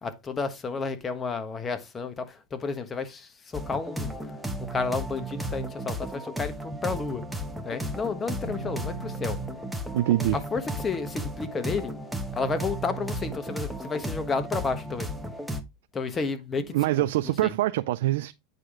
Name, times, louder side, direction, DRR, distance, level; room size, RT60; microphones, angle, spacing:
voice 1, 0.0-7.2 7.6-9.4 10.3-11.9 12.3-15.1 15.9-17.5, left 4 dB, 20° left, 1.3 m, -32 dB
sound 1, 3.5-15.6, right 1 dB, ahead, 1.1 m, -34 dB
sound 2, 8.4-14.0, left 8 dB, 45° left, 1.4 m, -47 dB
voice 2, 9.9-10.4 16.7-18.3, right 15 dB, 75° right, 0.4 m, -24 dB
9.0 x 5.0 x 3.7 m
supercardioid pair, 125°, 0 cm